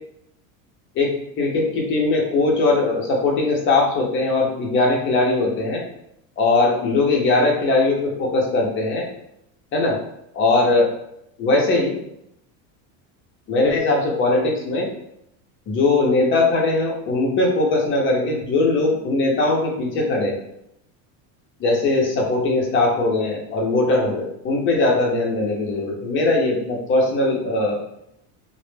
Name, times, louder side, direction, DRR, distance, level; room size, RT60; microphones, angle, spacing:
voice 1, 1.0-5.8 6.4-9.1 9.7-10.0 10.3-10.9 11.4-12.0 13.5-14.9 15.7-20.4 21.6-27.8, left 2 dB, 30° left, -1 dB, 0.5 m, -20 dB
2.1 x 2.0 x 3.1 m, 0.77 s
supercardioid pair, 145°, 43 cm